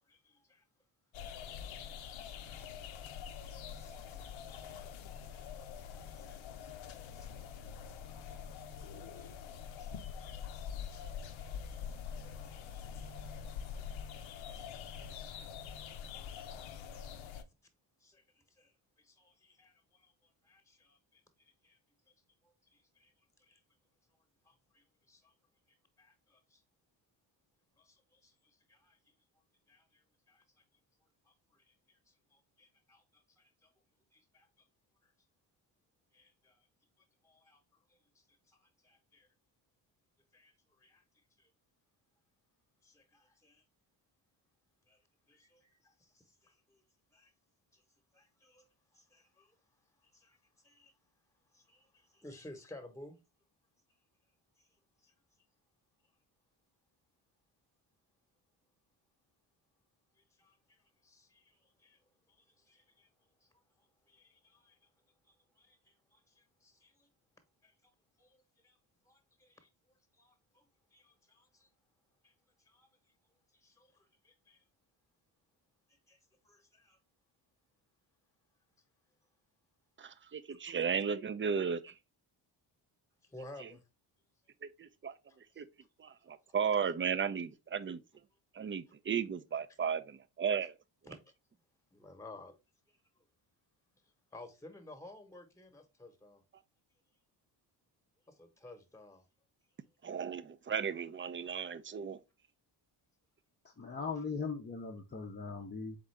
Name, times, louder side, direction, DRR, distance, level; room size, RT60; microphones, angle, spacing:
voice 1, 0.1-0.6 2.2-2.7 3.8-6.7 7.1-7.3 8.3-10.0 10.3-11.8 12.1-13.3 14.5-14.6 15.0-15.5 15.8-15.9 16.3-16.4 16.9-17.4 18.0-18.7 19.0-21.8 22.7-23.1 23.4-23.6 24.4-25.3 25.7-26.6 27.8-29.0 29.7-30.4 31.3-33.7 34.1-34.5 36.1-36.7 37.2-37.6 37.9-39.3 40.3-41.0 41.4-41.5 42.8-43.6 44.9-45.0 45.3-46.8 47.1-47.3 47.7-47.8 48.1-48.7 48.9-49.5 50.0-50.4 50.6-50.9 51.5-53.2 54.6-54.7 55.0-55.1 60.4-62.0 62.3-63.1 64.1-64.8 65.3-67.1 67.6-67.7 68.2-68.8 69.0-69.7 70.2-70.6 70.9-71.7 72.2-72.3 72.6-72.9 73.6-74.6 75.9-76.2 76.4-77.0 83.2-83.8 85.3-85.6 91.1-91.3 91.9-92.5 94.3-96.4 98.3-99.2 104.2-104.3, left 2 dB, 5° left, 1.0 m, -58 dB
sound 1, 1.1-17.4, left 7 dB, 80° left, 0.7 m, -45 dB
voice 2, 80.0-81.9 83.6-83.7 84.6-85.1 85.6-85.7 86.0-88.0 88.5-90.7 100.0-102.2, right 7 dB, 30° right, 0.4 m, -35 dB
voice 3, 103.8-106.0, left 4 dB, 25° left, 0.6 m, -39 dB
3.9 x 3.7 x 3.2 m
cardioid pair, 80°, 46 cm